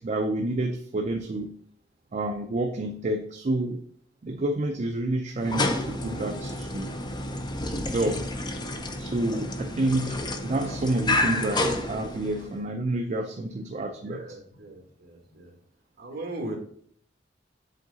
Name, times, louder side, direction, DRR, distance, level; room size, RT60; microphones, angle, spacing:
voice 1, 0.0-1.6 2.1-3.8 4.2-6.9 7.7-8.3 9.0-14.2, right 2 dB, 40° right, 4 dB, 0.4 m, -29 dB
sound 1, 5.4-12.6, left 2 dB, 25° left, 0.6 m, -30 dB
voice 2, 14.0-15.5 16.0-16.6, right 2 dB, 55° right, 1 dB, 1.5 m, -38 dB
7.5 x 3.7 x 3.9 m, 0.62 s
head